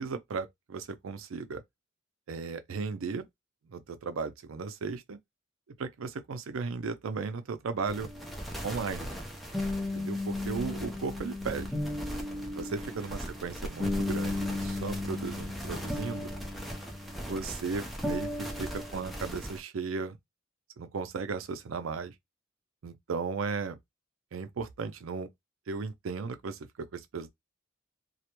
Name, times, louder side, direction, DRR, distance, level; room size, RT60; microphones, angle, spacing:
voice 1, 0.0-1.6 2.3-3.3 3.7-5.2 5.8-8.1 8.6-9.1 9.9-11.7 12.6-16.3 17.2-20.2 20.8-22.1 22.8-23.8 24.3-25.3 25.7-27.3, right 4 dB, 80° right, 0.5 m, -36 dB
sound 1, 7.9-19.6, left 1 dB, ahead, 0.5 m, -35 dB
2.3 x 2.1 x 2.9 m
head